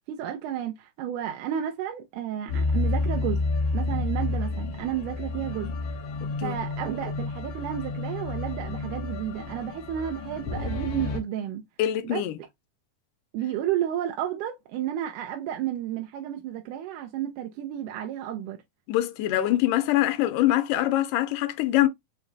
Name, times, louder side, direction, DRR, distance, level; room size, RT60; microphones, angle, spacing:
voice 1, 0.1-3.4 3.7-5.7 6.4-11.6 12.0-12.2 13.3-18.6, right 11 dB, 90° right, 2.2 m, -32 dB
sound 1, 2.5-11.2, left 3 dB, 60° left, 1.5 m, -30 dB
voice 2, 11.8-12.4 18.9-21.9, left 14 dB, 90° left, 2.3 m, -24 dB
6.0 x 2.1 x 4.0 m
omnidirectional pair, 3.6 m